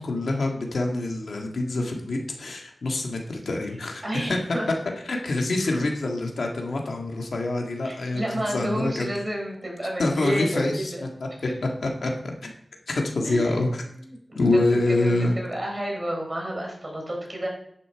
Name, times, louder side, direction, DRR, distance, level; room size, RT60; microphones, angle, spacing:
voice 1, 0.0-4.4 5.1-9.1 10.0-10.9 11.2-11.3 11.8-12.3 12.9-13.7 14.3-15.3, left 2 dB, 85° left, 1 dB, 1.8 m, -26 dB
voice 2, 4.0-4.7 5.6-5.9 7.8-11.0 13.2-13.7 14.0-14.5 14.9-17.5, right 1 dB, 30° right, -1 dB, 4.1 m, -31 dB
10.5 x 6.9 x 4.6 m, 0.70 s
wide cardioid pair, 85°, 0 cm